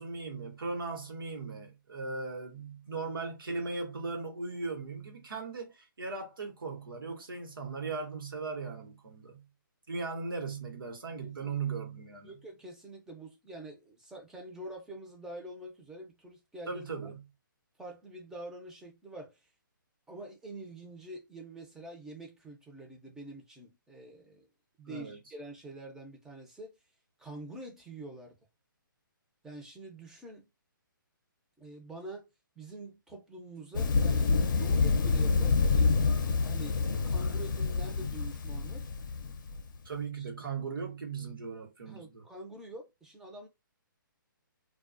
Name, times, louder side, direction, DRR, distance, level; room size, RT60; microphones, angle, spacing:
voice 1, 0.0-9.4 9.9-12.4 16.7-17.2 24.9-25.2 39.8-42.2, right 4 dB, 80° right, 1.0 m, -38 dB
voice 2, 11.2-11.5 12.2-16.9 17.8-19.4 20.1-24.5 24.8-26.7 27.2-28.4 29.4-30.5 31.6-32.3 32.6-36.0 36.4-36.8 37.0-38.9 40.2-40.3 41.9-43.5, right 2 dB, 5° right, 0.6 m, -46 dB
Thunder, 33.7-39.6, left 4 dB, 60° left, 0.6 m, -27 dB
2.3 x 2.2 x 2.5 m
hypercardioid pair, 145°, 11 cm